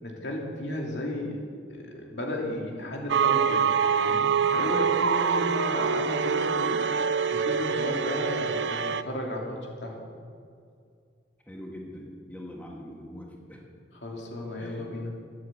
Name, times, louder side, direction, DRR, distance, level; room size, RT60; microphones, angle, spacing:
voice 1, 0.0-1.4 1.7-3.7 4.0-6.8 7.3-10.1 13.9-15.1, left 1 dB, 75° left, -1 dB, 2.7 m, -34 dB
sound 1, 3.1-9.0, right 6 dB, 80° right, 0.5 m, -25 dB
voice 2, 11.5-13.6 14.6-14.9, equal, 10° left, -2 dB, 1.8 m, -42 dB
12.0 x 10.5 x 7.9 m, 2.3 s
head